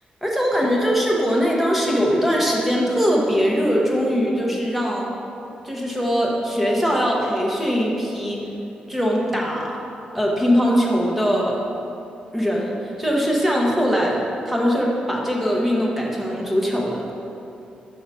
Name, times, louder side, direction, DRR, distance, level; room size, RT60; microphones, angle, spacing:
voice 1, 0.2-5.1 5.6-8.5 8.9-9.8 10.1-11.6 12.3-14.2 14.4-17.1, equal, 5° right, -3 dB, 0.8 m, -21 dB
5.2 x 3.8 x 5.4 m, 2.7 s
wide cardioid pair, 145°, 3 cm